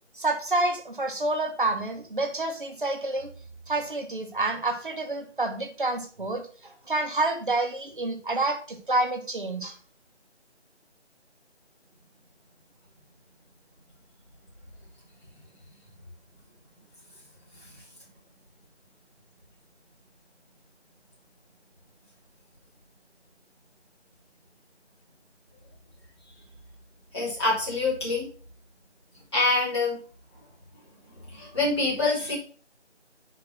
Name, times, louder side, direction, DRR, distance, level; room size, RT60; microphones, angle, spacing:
voice 1, 0.1-3.3 3.7-9.7, right 2 dB, 45° right, 5 dB, 1.1 m, -28 dB
voice 2, 27.1-28.3 29.3-30.0 31.2-32.3, left 3 dB, 25° left, -8 dB, 1.6 m, -26 dB
6.7 x 3.0 x 5.9 m, 0.41 s
figure-of-eight pair, 165°, 35 cm